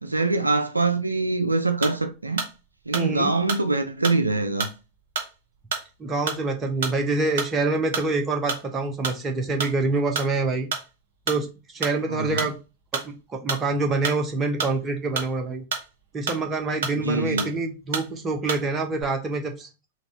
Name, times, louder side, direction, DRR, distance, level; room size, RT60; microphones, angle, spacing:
voice 1, 0.0-2.4 2.9-4.7 12.1-12.5 16.9-17.5, right 3 dB, 80° right, 0.3 m, -24 dB
sound 1, 1.8-2.1 2.4-2.6 2.9-3.6 4.0-4.3 4.6-4.8 5.2-5.3 5.7-5.9 6.3-6.5 6.8-7.0 7.4-7.6 7.9-8.2 8.5-8.7 9.0-9.2 9.6-9.8 10.1-10.3 10.7-10.9 11.3-11.5 11.8-12.0 12.4-12.6 12.9-13.1 13.5-13.7 14.0-14.2 14.6-15.3 15.7-15.9 16.3-16.4 16.8-17.1 17.4-17.6 17.9-18.1 18.5-18.7 18.9-19.0, right 5 dB, 55° right, 1.1 m, -30 dB
voice 2, 2.9-3.3 6.0-10.7 11.3-12.6 12.9-15.6 16.1-19.7, right 3 dB, 20° right, 0.9 m, -26 dB
3.9 x 2.4 x 3.8 m
figure-of-eight pair, 90°, 0 cm